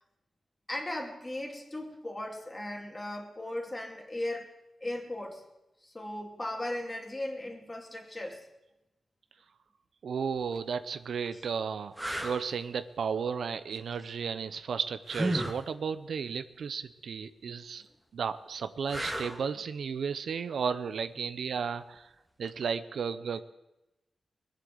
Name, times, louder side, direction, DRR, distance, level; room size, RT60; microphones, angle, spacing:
voice 1, 0.7-4.5 4.8-5.4 5.8-8.5 11.3-11.4, left 1 dB, 20° left, 2 dB, 2.8 m, -37 dB
voice 2, 10.0-11.9 12.2-17.8 18.1-22.1 22.4-23.4, right 6 dB, 75° right, 12 dB, 0.7 m, -34 dB
sound 1, 10.4-10.6 11.3-11.4 12.0-12.4 15.1-15.6 18.9-19.5 22.4-22.6, right 1 dB, 10° right, 1.9 m, -33 dB
21.0 x 7.7 x 7.9 m, 0.95 s
cardioid pair, 85°, 0 cm